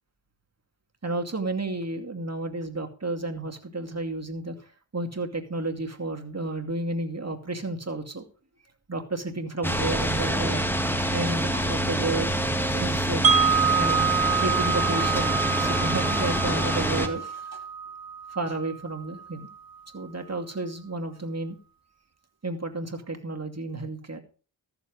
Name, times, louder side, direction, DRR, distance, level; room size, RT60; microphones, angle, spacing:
voice 1, 1.0-4.6 4.9-8.2 8.9-12.4 12.7-17.6 18.3-19.5 19.9-21.6 22.4-24.2, right 2 dB, 35° right, 4 dB, 2.5 m, -32 dB
sound 1, 9.6-17.1, equal, 5° left, 1.8 m, -26 dB
Wind chime, 13.2-19.2, right 6 dB, 50° right, 1.4 m, -26 dB
14.0 x 7.2 x 5.3 m, 0.38 s
cardioid pair, 50°, 46 cm